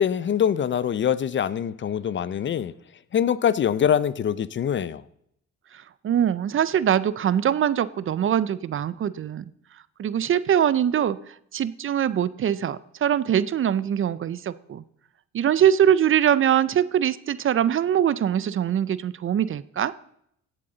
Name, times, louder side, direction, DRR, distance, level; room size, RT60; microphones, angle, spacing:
voice 1, 0.0-2.7 3.1-5.0, left 8 dB, 40° left, 0.5 m, -24 dB
voice 2, 5.7-9.4 10.0-14.8 15.3-19.9, right 9 dB, 45° right, 0.5 m, -23 dB
16.5 x 7.6 x 3.9 m
cardioid pair, 90°, 30 cm